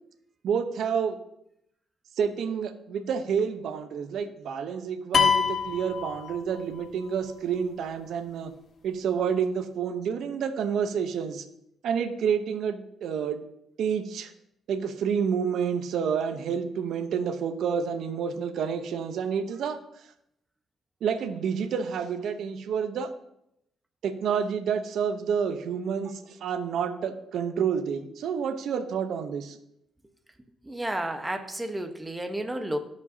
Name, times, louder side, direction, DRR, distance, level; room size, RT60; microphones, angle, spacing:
voice 1, 0.4-1.2 2.2-8.5 8.8-11.4 11.8-13.4 13.8-14.3 14.7-19.8 21.0-23.1 24.0-29.6, right 7 dB, 75° right, 9 dB, 0.8 m, -29 dB
sound 1, 5.1-6.8, left 7 dB, 50° left, 0.9 m, -25 dB
voice 2, 30.6-32.8, right 1 dB, 10° right, 6 dB, 1.1 m, -31 dB
16.0 x 5.3 x 2.8 m, 0.78 s
cardioid pair, 90°, 0 cm